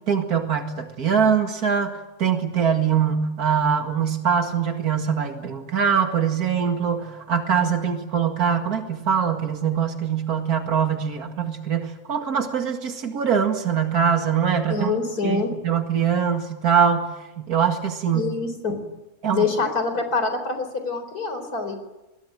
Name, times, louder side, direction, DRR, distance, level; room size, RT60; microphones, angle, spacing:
voice 1, 0.1-14.9 15.2-17.1 17.4-18.3 19.2-19.5, right 7 dB, 80° right, 5 dB, 2.5 m, -23 dB
voice 2, 14.7-15.5 18.1-18.8 19.3-21.7, left 4 dB, 80° left, 8 dB, 4.7 m, -25 dB
26.0 x 22.0 x 8.9 m, 1.0 s
omnidirectional pair, 1.6 m